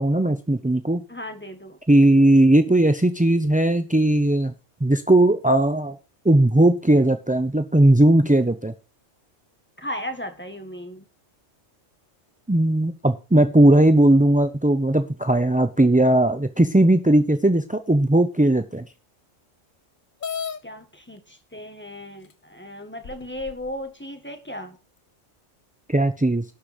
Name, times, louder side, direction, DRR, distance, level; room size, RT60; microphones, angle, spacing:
voice 1, 0.0-1.0 1.9-4.5 4.8-6.0 6.2-8.7 12.5-18.9 25.9-26.4, right 1 dB, 15° right, 9 dB, 0.3 m, -18 dB
voice 2, 1.1-1.8 9.8-11.0 20.6-24.8, left 1 dB, 10° left, 6 dB, 1.7 m, -36 dB
sound 1, 20.2-20.6 21.6-21.7 22.3-22.4 23.0-23.7, left 7 dB, 45° left, 0.9 m, -33 dB
11.5 x 5.1 x 6.3 m, 0.32 s
omnidirectional pair, 1.3 m